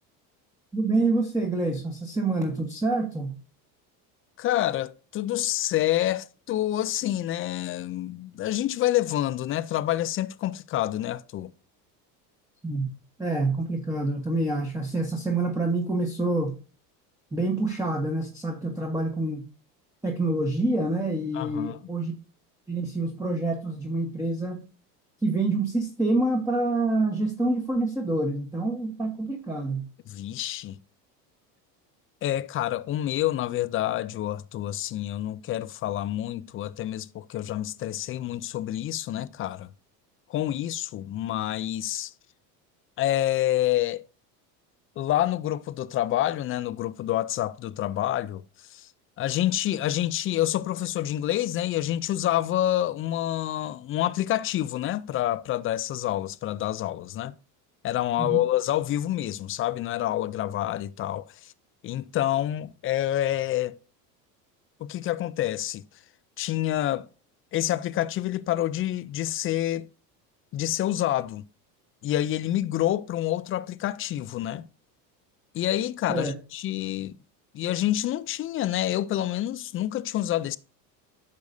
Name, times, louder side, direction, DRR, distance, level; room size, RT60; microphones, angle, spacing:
voice 1, 0.7-3.4 12.6-12.9 13.2-16.6 17.3-19.4 20.0-22.2 22.7-24.6 25.2-29.9 58.2-58.4 76.1-76.3, right 2 dB, 5° right, 1.3 m, -27 dB
voice 2, 4.4-11.5 21.3-21.8 30.1-30.8 32.2-39.7 40.3-42.1 43.0-44.1 45.0-48.4 48.7-48.9 49.2-57.3 57.8-61.5 61.8-63.8 64.8-65.8 66.4-67.1 67.5-69.9 70.5-71.4 72.0-74.7 75.5-77.1 77.5-80.6, left 13 dB, 30° left, 0.4 m, -27 dB
10.5 x 6.8 x 2.6 m
hypercardioid pair, 80°, 49 cm